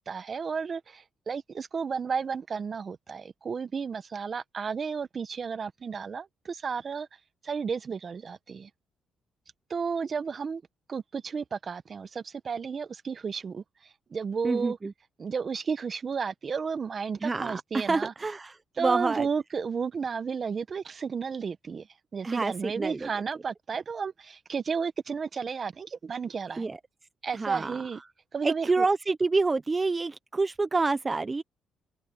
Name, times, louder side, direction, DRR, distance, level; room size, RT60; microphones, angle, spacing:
voice 1, 0.0-7.1 7.4-8.7 9.7-10.6 10.9-14.8 15.2-18.1 18.8-21.9 22.1-26.7 27.2-28.0 28.3-28.9, right 5 dB, 40° right, 1.0 m, -33 dB
voice 2, 14.4-14.9 17.2-19.3 22.2-23.1 26.6-26.8 27.3-27.8 28.4-31.4, right 3 dB, 25° right, 0.7 m, -28 dB
open air
cardioid pair, 90°, 0 cm